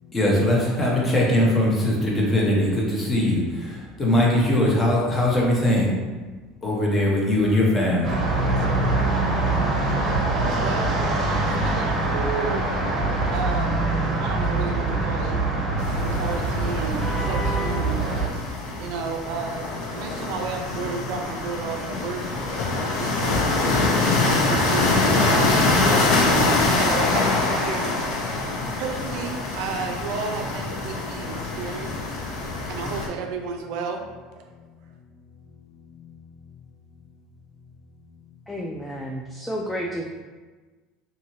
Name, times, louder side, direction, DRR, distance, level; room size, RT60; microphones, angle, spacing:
voice 1, 0.0-5.9 6.6-8.2 35.8-36.1, left 1 dB, 25° left, -3 dB, 0.9 m, -21 dB
sound 1, 8.0-18.3, right 2 dB, 40° right, 0.7 m, -24 dB
voice 2, 8.5-11.0 11.5-12.8 13.3-13.8 14.2-15.4 15.9-18.2 18.8-22.2 22.8-32.2 32.7-34.0 34.3-34.4, right 5 dB, 70° right, 3 dB, 0.4 m, -33 dB
sound 2, 15.8-33.1, left 3 dB, 70° left, 0.6 m, -24 dB
voice 3, 38.5-40.1, equal, 5° left, -2 dB, 0.3 m, -31 dB
2.6 x 2.6 x 2.9 m, 1.3 s
supercardioid pair, 100°, 0 cm